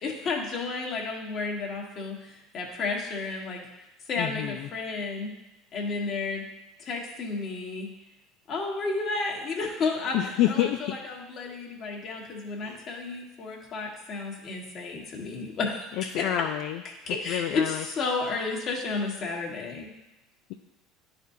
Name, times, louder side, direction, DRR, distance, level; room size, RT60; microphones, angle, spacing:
voice 1, 0.0-3.7 4.1-5.3 5.7-6.4 6.8-7.9 8.5-10.2 10.5-16.1 17.1-19.9, left 4 dB, 50° left, 0 dB, 1.6 m, -32 dB
voice 2, 4.2-4.7 10.1-11.0 12.6-12.9 15.9-16.8 17.1-17.8, left 12 dB, 65° left, 5 dB, 0.4 m, -28 dB
11.0 x 4.2 x 2.8 m, 0.99 s
hypercardioid pair, 85°, 0 cm